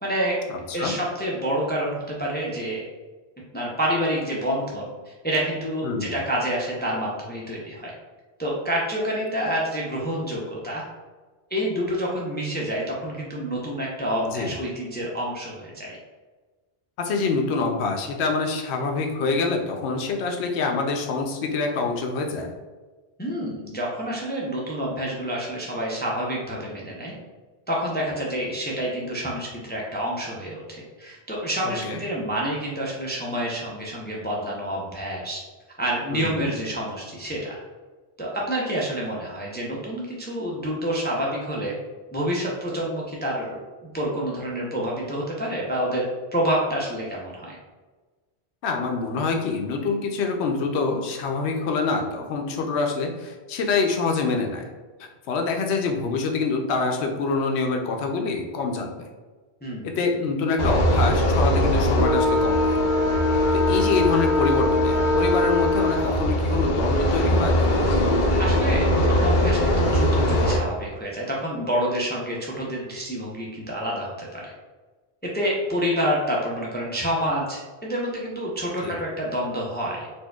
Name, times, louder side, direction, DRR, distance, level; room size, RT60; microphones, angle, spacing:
voice 1, 0.0-0.4 0.7-2.9 3.5-7.9 8.4-10.8 11.5-16.0 23.2-27.1 27.7-35.4 35.8-37.6 38.2-41.7 42.1-46.0 46.3-47.5 59.6-60.0 68.4-74.5 75.3-80.1, equal, 15° left, -4 dB, 0.3 m, -28 dB
voice 2, 5.8-6.2 14.3-14.5 17.0-22.5 31.6-32.0 36.1-36.5 48.6-54.6 55.0-59.1 59.8-62.8 63.5-67.7 78.8-79.0, left 4 dB, 85° left, 3 dB, 0.8 m, -26 dB
sound 1, 60.6-70.6, left 1 dB, 60° left, 0.6 m, -21 dB
4.3 x 2.5 x 2.2 m, 1.3 s
omnidirectional pair, 1.1 m